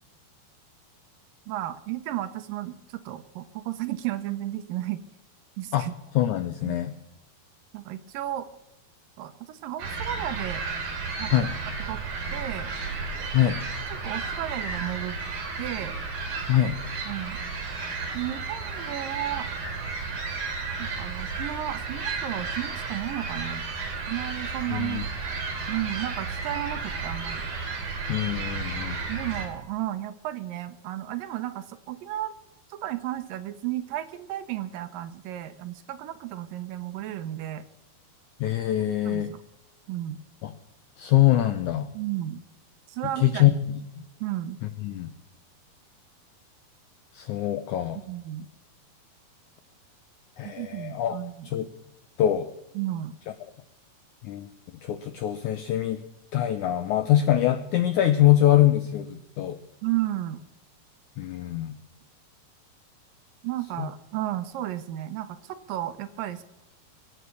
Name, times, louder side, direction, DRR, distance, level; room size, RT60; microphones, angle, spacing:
voice 1, 1.5-5.0 5.6-6.0 6.6-6.8 7.7-8.5 9.2-10.6 11.2-11.4 11.9-12.0 12.3-12.7 13.9-15.1 15.6-15.9 17.1-17.5 18.1-19.5 20.8-23.7 24.1-25.1 25.7-27.5 29.1-32.3 32.7-37.7 39.1-39.4 39.9-40.2 41.9-42.4 42.9-43.6 44.2-44.6 48.0-48.5 50.4-51.5 52.8-53.1 59.8-60.4 63.4-66.4, right 13 dB, 75° right, 11 dB, 2.3 m, -33 dB
voice 2, 6.1-6.9 11.3-11.5 13.3-13.6 16.5-16.7 24.7-25.0 28.1-29.0 38.4-39.3 40.4-40.5 41.0-41.9 43.2-43.6 44.6-45.1 47.1-48.0 50.4-51.2 51.4-51.7 52.2-52.5 54.2-54.5 54.8-56.0 56.3-59.6 61.2-61.7 63.8-63.9, left 12 dB, 80° left, 10 dB, 1.7 m, -23 dB
sound 1, 9.8-29.5, right 4 dB, 55° right, 4.4 m, -33 dB
23.0 x 8.0 x 6.9 m, 0.92 s
omnidirectional pair, 4.4 m